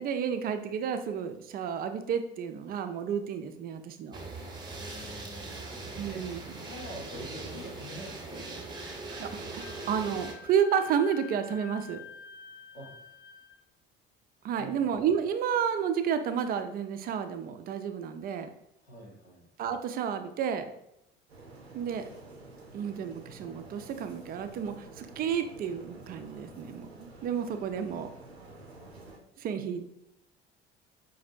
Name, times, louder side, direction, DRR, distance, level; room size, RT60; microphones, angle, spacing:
voice 1, 0.0-4.2 6.0-6.4 9.2-9.5 9.9-12.0 14.4-18.5 19.6-20.6 21.7-22.0 22.7-28.1 29.4-29.9, right 7 dB, 30° right, 8 dB, 0.4 m, -31 dB
sound 1, 4.1-10.3, right 3 dB, 15° right, 0.8 m, -40 dB
voice 2, 4.7-8.4 12.7-12.9 14.6-14.9 18.8-19.4, equal, 85° left, -2 dB, 0.8 m, -46 dB
Wind instrument woodwind instrument, 9.6-13.6, left 8 dB, 55° left, 0.5 m, -48 dB
sound 2, 21.3-29.2, right 2 dB, 90° right, 0.5 m, -50 dB
5.0 x 2.6 x 2.4 m, 0.81 s
figure-of-eight pair, 55°, 31 cm